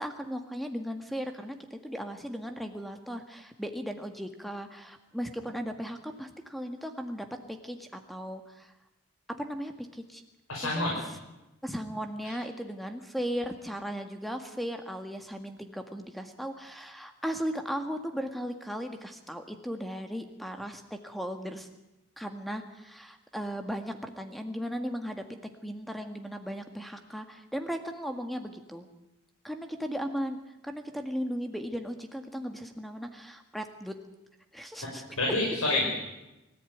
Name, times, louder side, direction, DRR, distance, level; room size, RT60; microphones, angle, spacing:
voice 1, 0.0-8.7 9.4-10.2 10.6-10.9 11.6-21.7 22.2-25.2 25.6-28.9 29.4-30.4 30.6-33.9 34.5-35.0 35.7-35.8, equal, ahead, 6 dB, 1.8 m, -36 dB
voice 2, 10.5-11.0 35.2-35.9, left 2 dB, 80° left, -2 dB, 5.3 m, -27 dB
23.5 x 14.5 x 9.4 m, 0.98 s
head